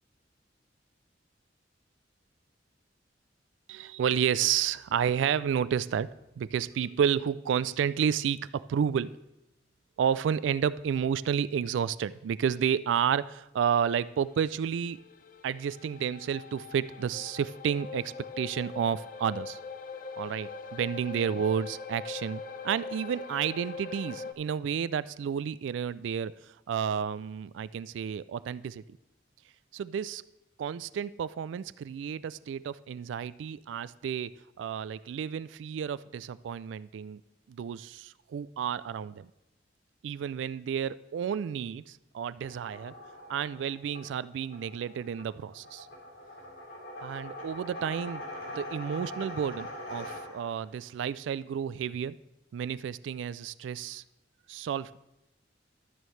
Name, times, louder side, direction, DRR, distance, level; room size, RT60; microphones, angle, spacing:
voice 1, 3.7-9.1 10.0-15.0 15.4-19.6 20.2-28.8 29.7-30.2 30.6-37.2 37.5-39.3 40.0-42.9 43.3-45.9 47.0-52.2 52.5-54.0 54.5-55.0, right 8 dB, 90° right, 17 dB, 0.3 m, -31 dB
sound 1, 14.0-24.3, left 5 dB, 50° left, 0.5 m, -42 dB
sound 2, 42.4-50.7, left 1 dB, 80° left, 3.6 m, -43 dB
12.5 x 9.2 x 3.2 m, 0.89 s
head